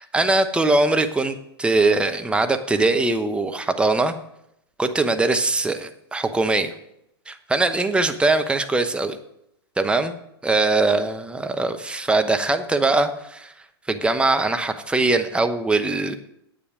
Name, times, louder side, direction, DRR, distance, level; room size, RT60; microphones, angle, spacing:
voice 1, 0.0-4.1 4.8-6.7 7.3-9.2 9.8-10.1 10.4-13.5 13.9-16.2, right 2 dB, 5° right, 7 dB, 0.9 m, -21 dB
10.0 x 8.5 x 4.8 m, 0.77 s
hypercardioid pair, 100°, 14 cm